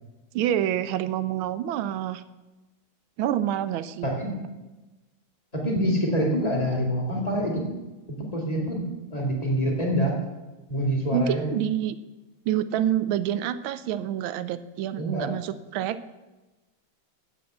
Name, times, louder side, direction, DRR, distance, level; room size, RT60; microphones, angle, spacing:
voice 1, 0.3-2.2 3.2-4.1 11.1-12.0 12.5-16.0, right 11 dB, 85° right, 13 dB, 1.4 m, -27 dB
voice 2, 4.0-4.4 5.5-7.6 8.2-8.9 9.1-10.2 10.7-11.6 14.9-15.3, equal, 20° left, -1 dB, 2.2 m, -26 dB
8.3 x 7.8 x 7.8 m, 1.1 s
omnidirectional pair, 2.2 m